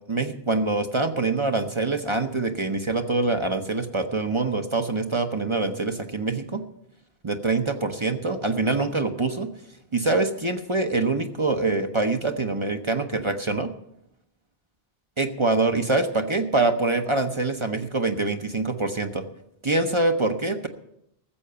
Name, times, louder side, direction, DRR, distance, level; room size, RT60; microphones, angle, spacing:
voice 1, 0.1-6.6 7.2-9.5 9.9-13.7 15.2-19.2 19.6-20.7, right 3 dB, 30° right, 6 dB, 0.8 m, -25 dB
14.0 x 7.7 x 6.9 m, 0.78 s
omnidirectional pair, 1.0 m